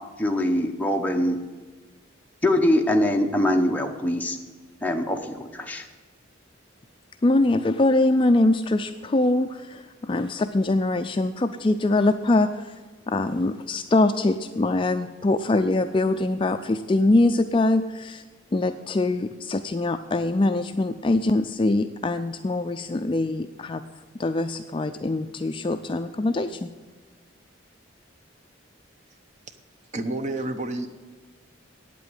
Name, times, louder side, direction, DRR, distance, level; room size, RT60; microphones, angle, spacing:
voice 1, 0.2-1.4 2.4-4.4 4.8-5.9, left 1 dB, 10° left, 2 dB, 0.9 m, -23 dB
voice 2, 7.2-12.7 13.1-18.2 18.5-23.8 24.2-26.7, left 2 dB, 25° left, 8 dB, 0.3 m, -23 dB
voice 3, 29.9-31.0, right 2 dB, 35° right, 9 dB, 0.7 m, -29 dB
8.9 x 8.3 x 9.1 m, 1.4 s
head